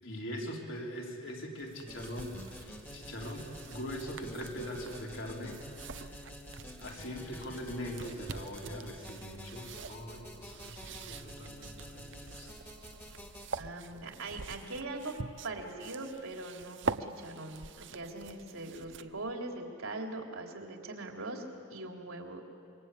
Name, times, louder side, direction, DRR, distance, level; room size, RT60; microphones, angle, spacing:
voice 1, 0.0-5.6 5.9-6.2 6.8-12.5, equal, 65° left, -1 dB, 4.5 m, -42 dB
sound 1, 1.6-19.3, right 4 dB, 60° right, 0.8 m, -45 dB
sound 2, 1.9-13.5, equal, 10° left, 2.1 m, -48 dB
voice 2, 13.6-15.2 15.4-21.4 21.7-22.4, right 2 dB, 85° right, 1 dB, 3.6 m, -41 dB
26.5 x 24.0 x 8.5 m, 2.7 s
head